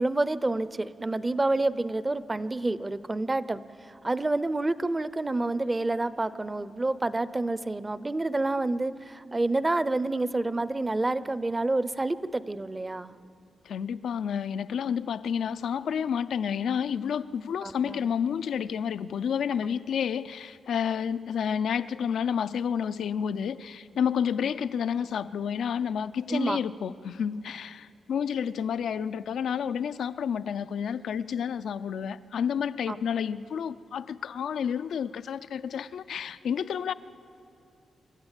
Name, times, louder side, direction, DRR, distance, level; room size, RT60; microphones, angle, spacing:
voice 1, 0.0-3.6 4.0-13.1 17.6-18.0 26.3-26.6 32.9-33.0, right 2 dB, 20° right, 15 dB, 0.6 m, -28 dB
voice 2, 13.6-36.9, left 7 dB, 80° left, 13 dB, 0.5 m, -30 dB
26.5 x 13.5 x 9.0 m, 2.6 s
wide cardioid pair, 120°, 0 cm